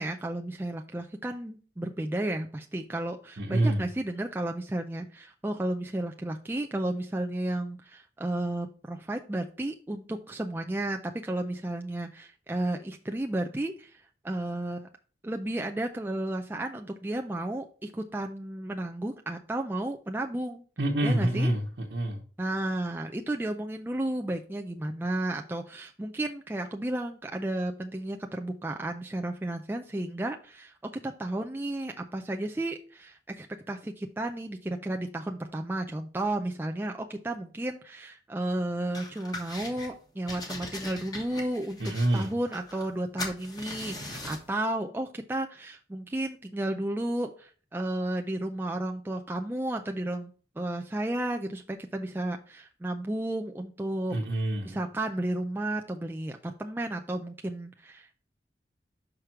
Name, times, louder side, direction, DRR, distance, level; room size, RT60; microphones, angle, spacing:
voice 1, 0.0-14.9 15.2-20.6 21.0-21.5 22.4-30.7 31.0-54.2 54.6-58.3, right 1 dB, 10° right, 3 dB, 0.4 m, -33 dB
voice 2, 3.4-3.9 20.8-22.2 41.8-42.3 54.1-54.8, right 1 dB, 85° right, -2 dB, 1.1 m, -27 dB
sound 1, 38.9-39.9 40.3-42.9 43.2-44.5, left 2 dB, 25° left, 1.3 m, -40 dB
6.0 x 5.0 x 4.5 m, 0.40 s
head